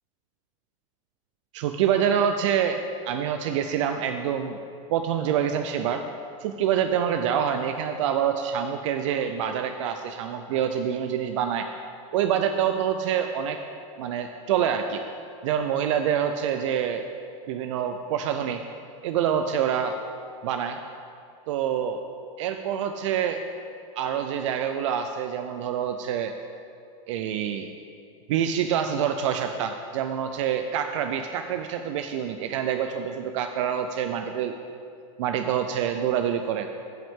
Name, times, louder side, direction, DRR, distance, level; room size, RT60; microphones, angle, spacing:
voice 1, 1.5-4.6 4.9-6.0 6.4-11.7 12.1-13.6 14.0-15.0 15.4-17.1 17.5-18.6 19.0-20.0 20.4-20.8 21.5-22.0 22.4-23.4 24.0-26.4 27.1-27.7 28.3-34.5 35.2-36.7, right 8 dB, 60° right, 7 dB, 0.4 m, -26 dB
14.5 x 5.6 x 3.6 m, 2.5 s
supercardioid pair, 180°, 17 cm